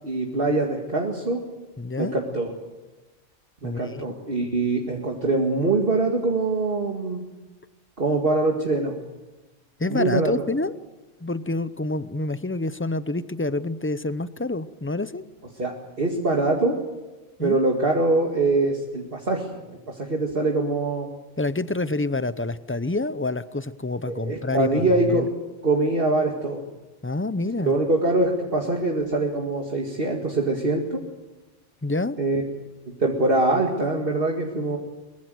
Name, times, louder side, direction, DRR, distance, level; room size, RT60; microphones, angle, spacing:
voice 1, 0.0-1.4 2.0-2.5 3.6-7.2 8.0-9.0 9.9-10.3 15.6-16.8 17.4-21.1 24.1-25.3 25.6-26.6 27.6-31.0 32.2-32.4 33.0-34.8, right 2 dB, 50° right, 1 dB, 2.3 m, -23 dB
voice 2, 1.8-2.1 3.6-4.1 9.8-10.7 11.2-15.2 17.4-17.6 21.4-25.3 27.0-27.8 31.8-32.2, left 2 dB, 15° left, 14 dB, 0.5 m, -27 dB
23.5 x 21.0 x 7.8 m, 1.1 s
omnidirectional pair, 1.2 m